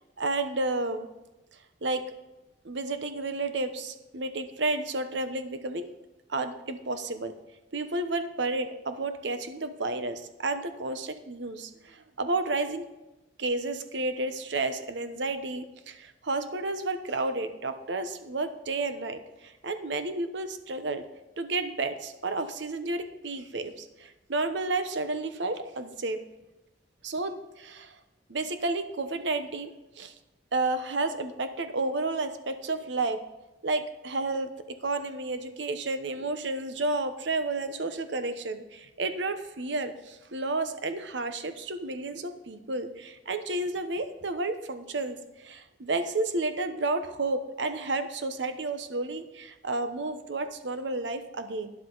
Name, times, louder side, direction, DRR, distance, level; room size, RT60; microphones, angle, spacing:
voice 1, 0.2-1.1 1.8-2.1 2.6-5.9 6.3-7.3 7.7-12.9 13.4-21.0 21.4-26.2 27.0-27.9 28.3-29.7 30.0-30.1 30.5-33.2 33.6-34.5 34.8-51.7, right 2 dB, 65° right, 9 dB, 0.9 m, -31 dB
12.5 x 10.5 x 4.0 m, 1.0 s
head